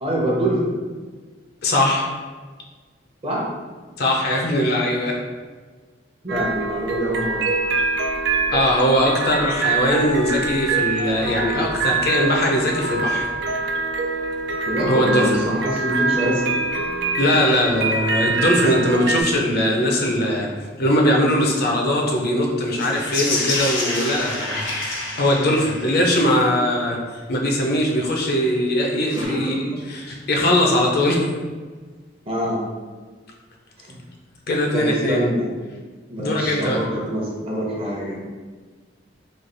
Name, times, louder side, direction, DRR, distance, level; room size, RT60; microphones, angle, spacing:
voice 1, 0.0-0.7 3.2-3.5 6.2-7.4 14.7-16.6 29.2-29.6 32.3-32.6 33.9-34.0 34.7-35.5 36.1-38.2, equal, 30° right, -3 dB, 0.8 m, -24 dB
voice 2, 1.6-2.1 4.0-5.2 8.5-13.3 14.9-15.4 17.2-20.5 20.8-27.0 27.3-31.2 34.5-35.3 36.2-36.8, left 1 dB, 55° left, 0 dB, 0.6 m, -20 dB
sound 1, 6.3-19.2, right 3 dB, 65° right, 0.3 m, -24 dB
sound 2, 22.7-26.2 29.0-29.3, left 2 dB, 85° left, 0.9 m, -27 dB
3.2 x 2.4 x 3.9 m, 1.4 s
head